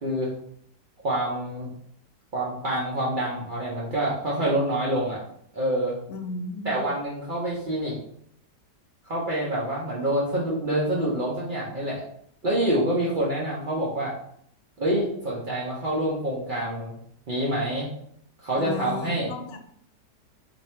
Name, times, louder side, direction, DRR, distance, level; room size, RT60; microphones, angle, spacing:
voice 1, 0.0-0.3 1.0-1.7 2.3-5.2 5.5-6.0 6.6-8.0 9.1-12.0 12.4-14.1 14.8-16.9 17.3-17.9 18.4-19.3, right 1 dB, 80° right, -6 dB, 0.4 m, -26 dB
voice 2, 6.1-6.8 18.6-19.6, left 3 dB, 85° left, 5 dB, 1.2 m, -34 dB
2.6 x 2.6 x 4.3 m, 0.69 s
omnidirectional pair, 1.8 m